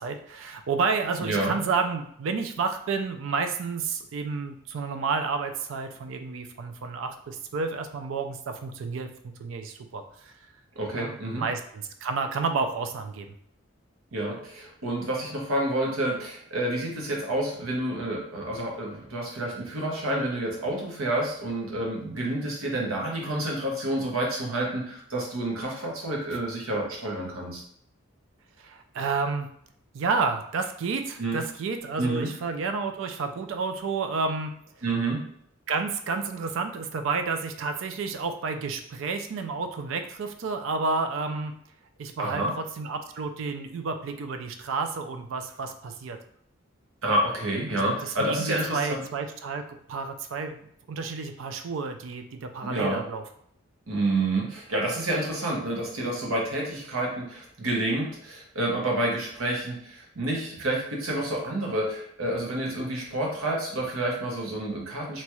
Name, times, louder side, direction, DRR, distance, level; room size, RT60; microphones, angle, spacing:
voice 1, 0.0-10.3 10.9-13.3 28.6-29.5 29.9-34.5 35.7-41.5 42.0-46.2 47.8-50.6 50.9-53.2, right 4 dB, 70° right, 7 dB, 0.4 m, -30 dB
voice 2, 1.2-1.5 10.8-11.4 14.1-27.6 31.2-31.4 32.0-32.3 34.8-35.2 42.2-42.5 47.0-49.0 52.6-53.0 53.9-65.2, right 1 dB, 85° right, -1 dB, 0.9 m, -29 dB
2.9 x 2.3 x 3.0 m, 0.67 s
head